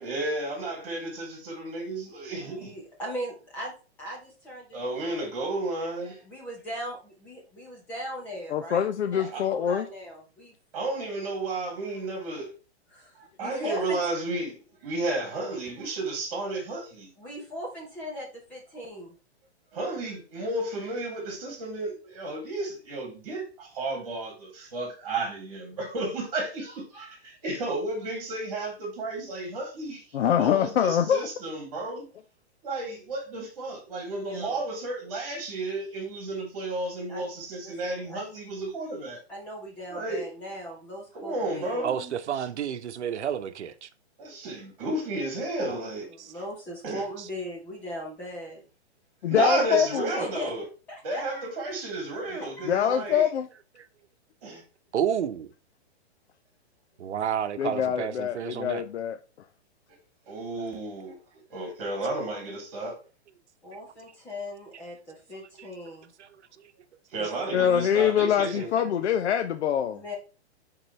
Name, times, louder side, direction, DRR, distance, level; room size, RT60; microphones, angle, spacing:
voice 1, 0.0-2.7 4.7-6.2 9.3-9.4 10.7-12.5 13.2-14.5 14.8-17.1 19.7-30.0 30.4-32.0 32.6-39.2 39.9-40.3 41.1-42.1 44.2-46.1 46.8-47.0 49.3-50.6 51.0-53.3 54.4-54.6 60.3-61.1 61.5-62.9 67.1-68.7, right 2 dB, 35° right, 3.3 m, -32 dB
voice 2, 2.3-3.7 4.0-5.3 6.2-10.5 12.9-14.0 17.2-19.1 34.2-34.6 37.1-37.3 37.6-38.4 39.3-41.8 46.1-48.6 50.1-50.5 50.9-51.5 52.4-53.0 63.6-66.1 67.1-68.0 69.9-70.1, equal, 5° left, 0.7 m, -39 dB
voice 3, 8.5-9.9 30.1-31.3 49.2-50.1 52.7-53.5 57.6-59.2 67.5-70.0, left 9 dB, 80° left, 0.7 m, -24 dB
voice 4, 41.8-43.9 46.2-46.3 47.2-47.3 53.8-53.9 54.9-55.5 57.0-58.8 65.6-65.7 66.2-66.3 67.2-67.3, right 9 dB, 90° right, 0.9 m, -30 dB
9.7 x 3.9 x 3.2 m
hypercardioid pair, 180°, 33 cm